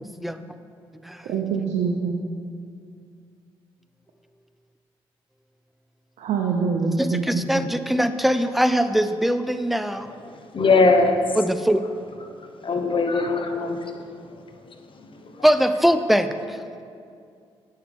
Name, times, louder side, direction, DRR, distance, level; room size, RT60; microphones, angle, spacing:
voice 1, 1.3-2.2 6.2-7.2 7.5-7.7, right 5 dB, 70° right, 1 dB, 0.7 m, -24 dB
voice 2, 7.0-10.1 11.4-11.8 15.4-16.6, equal, ahead, 10 dB, 0.5 m, -22 dB
voice 3, 10.5-11.1 12.6-14.1 15.0-15.4, left 3 dB, 45° left, 6 dB, 0.9 m, -21 dB
9.3 x 6.6 x 3.6 m, 2.4 s
hypercardioid pair, 45°, 12 cm